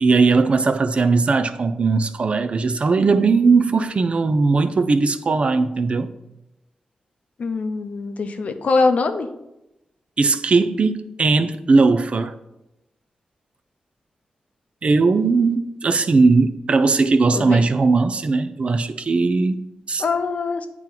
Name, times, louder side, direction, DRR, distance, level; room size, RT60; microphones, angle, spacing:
voice 1, 0.0-6.1 10.2-12.3 14.8-19.6 19.9-20.0, right 4 dB, 50° right, 0.4 m, -18 dB
voice 2, 7.4-9.3 17.3-17.7 20.0-20.7, left 4 dB, 65° left, 0.5 m, -22 dB
8.8 x 3.0 x 3.8 m
cardioid pair, 55°, 3 cm